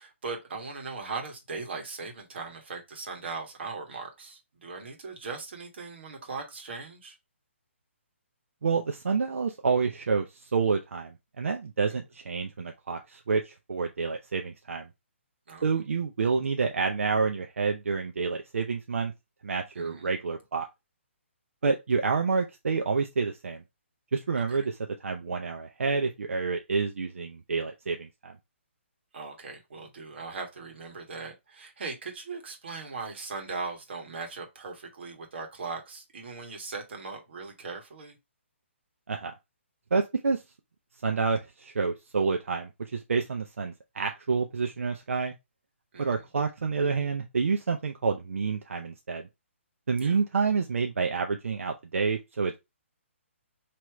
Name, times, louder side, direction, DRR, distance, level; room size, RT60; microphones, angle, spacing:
voice 1, 0.0-7.2 15.5-15.7 19.7-20.1 24.3-24.6 29.1-38.2 45.9-46.2 50.0-50.2, right 4 dB, 55° right, 1.5 m, -39 dB
voice 2, 8.6-14.9 15.6-19.1 19.4-20.7 21.6-23.6 24.1-28.3 39.1-39.3 39.9-40.4 41.0-45.3 46.0-49.3 49.9-52.5, right 4 dB, 85° right, 0.6 m, -28 dB
3.1 x 3.0 x 4.6 m
hypercardioid pair, 165°, 7 cm